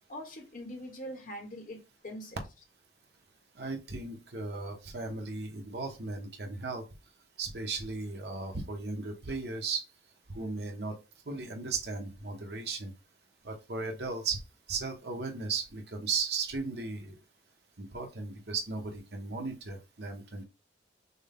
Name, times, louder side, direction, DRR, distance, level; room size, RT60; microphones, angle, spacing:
voice 1, 0.1-2.4, equal, 50° left, 1.3 m, -43 dB
voice 2, 3.6-6.8 7.4-9.9 10.3-10.9 11.3-12.9 13.4-14.4 14.7-17.1 17.8-20.4, right 4 dB, 65° right, 1.1 m, -36 dB
6.1 x 2.2 x 3.5 m
head